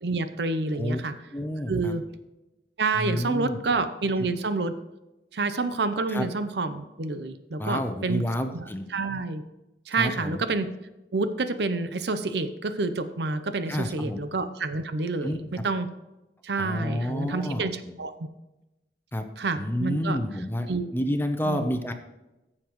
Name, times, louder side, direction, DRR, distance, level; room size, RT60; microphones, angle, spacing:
voice 1, 0.0-1.1 1.7-2.0 2.8-4.7 5.3-8.2 8.5-8.6 8.9-9.4 9.9-10.7 11.1-15.9 16.4-18.3 19.4-20.2 20.7-20.9 21.5-21.6, right 3 dB, 75° right, 10 dB, 0.7 m, -28 dB
voice 2, 1.3-1.9 3.0-3.6 6.1-6.2 7.6-8.9 10.0-10.4 13.7-14.2 15.2-15.6 16.5-17.9 19.1-19.2 19.6-21.9, left 1 dB, 10° left, 6 dB, 0.7 m, -29 dB
14.5 x 7.4 x 3.1 m, 0.98 s
head